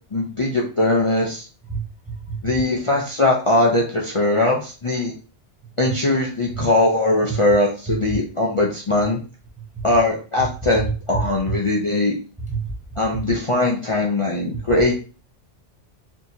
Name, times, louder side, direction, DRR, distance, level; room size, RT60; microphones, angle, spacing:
voice 1, 0.1-1.5 2.4-5.1 5.8-9.2 9.8-12.2 13.0-14.9, left 2 dB, 35° left, -2 dB, 0.6 m, -20 dB
voice 2, 1.7-2.5 7.9-8.0 10.8-11.2 11.5-11.6 12.4-12.7 13.1-13.2, right 5 dB, 10° right, -1 dB, 0.6 m, -27 dB
4.4 x 2.9 x 2.7 m, 0.36 s
omnidirectional pair, 1.2 m